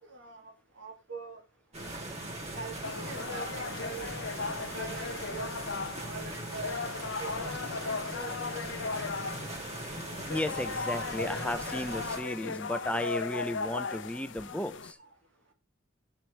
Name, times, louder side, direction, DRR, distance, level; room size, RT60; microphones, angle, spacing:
voice 1, 0.0-1.4 2.5-4.1 4.7-5.5 6.0-9.1 14.5-14.7 15.0-15.1, right 3 dB, 85° right, 2.4 m, -44 dB
sound 1, 1.7-12.2, right 1 dB, 35° right, 2.7 m, -40 dB
sound 2, 2.8-14.9, left 4 dB, 75° left, 0.6 m, -37 dB
voice 2, 10.3-15.0, left 1 dB, 5° left, 0.5 m, -34 dB
10.5 x 7.4 x 3.3 m
head